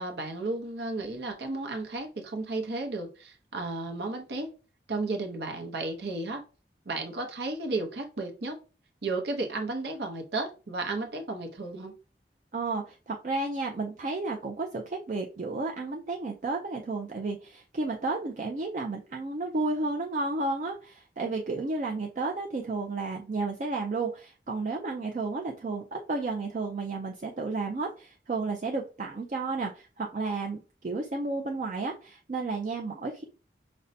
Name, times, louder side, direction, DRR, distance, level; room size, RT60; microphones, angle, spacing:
voice 1, 0.0-4.5 4.9-6.4 6.9-8.6 9.0-11.9, right 2 dB, 70° right, 3 dB, 0.7 m, -33 dB
voice 2, 12.5-33.2, right 3 dB, 45° right, 1 dB, 0.4 m, -32 dB
5.2 x 2.1 x 2.6 m, 0.33 s
head